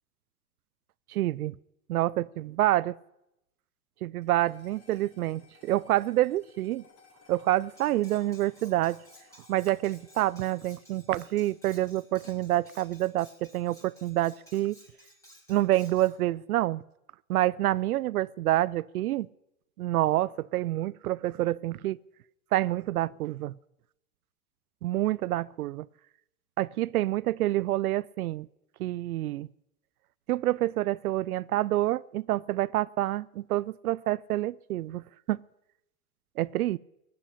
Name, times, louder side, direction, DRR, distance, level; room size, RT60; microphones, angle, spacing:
voice 1, 1.1-1.5 1.9-3.0 4.0-6.8 7.3-9.0 9.5-14.8 15.5-16.8 17.3-19.3 19.8-22.0 22.5-23.5 24.8-25.9 26.6-28.5 28.8-29.5 30.3-35.4 36.4-36.8, right 15 dB, 75° right, 0.5 m, -27 dB
sound 1, 4.2-12.7, left 4 dB, 30° left, 4.4 m, -61 dB
Cutlery silverware, 7.8-16.1, equal, 5° left, 5.0 m, -56 dB
17.5 x 7.7 x 10.0 m
hypercardioid pair, 105°, 45 cm